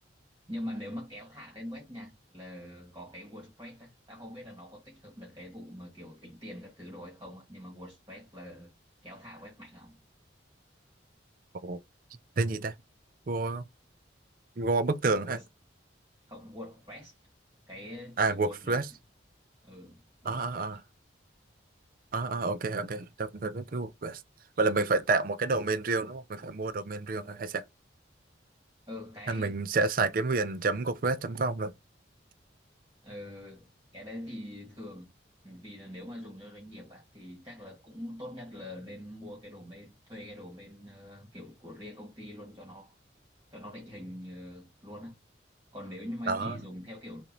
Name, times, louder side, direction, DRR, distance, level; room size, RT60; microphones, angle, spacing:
voice 1, 0.5-8.7 9.0-9.9 15.1-15.4 16.3-17.1 17.7-18.8 19.6-20.7 28.9-29.6 33.0-35.1 35.4-42.9 43.5-45.1 45.7-47.2, left 1 dB, 20° right, 1.9 m, -44 dB
voice 2, 12.4-12.7 13.3-13.6 14.6-15.4 18.2-18.8 20.2-20.8 22.1-24.2 24.6-27.6 29.3-31.7 46.3-46.6, right 3 dB, 45° right, 0.5 m, -29 dB
6.8 x 2.6 x 3.0 m
head